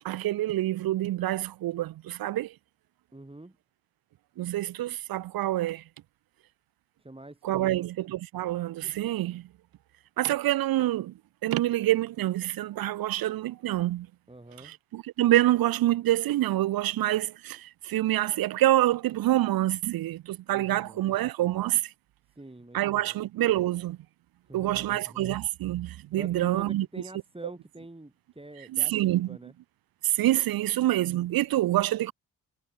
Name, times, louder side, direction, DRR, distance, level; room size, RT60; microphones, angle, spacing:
voice 1, 0.0-2.5 4.4-5.8 7.4-9.5 10.2-11.1 11.4-14.1 14.6-21.9 22.7-24.0 24.5-26.9 28.7-29.4 30.0-32.1, right 15 dB, 65° right, 0.9 m, -26 dB
voice 2, 3.1-3.6 7.0-7.9 14.3-14.7 20.5-21.1 22.3-23.2 24.5-25.3 26.2-29.5, right 2 dB, 15° right, 7.2 m, -46 dB
hypercardioid pair, 50°, 38 cm